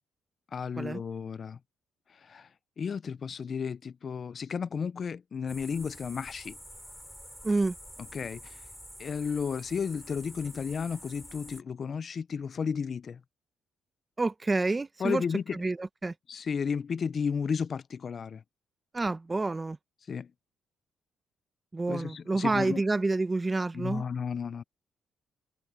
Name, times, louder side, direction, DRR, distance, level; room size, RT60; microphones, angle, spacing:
voice 1, 0.5-1.6 2.2-2.5 2.8-6.6 8.1-8.6 9.0-13.2 15.0-15.6 16.3-18.4 20.1-20.3 21.9-22.8 23.7-24.6, left 6 dB, 45° left, 0.4 m, -33 dB
sound 1, 5.5-11.6, equal, ahead, 7.6 m, -48 dB
voice 2, 7.4-7.7 14.2-15.2 15.5-16.1 18.9-19.8 21.7-24.0, right 3 dB, 20° right, 1.0 m, -28 dB
cardioid pair, 90°, 0 cm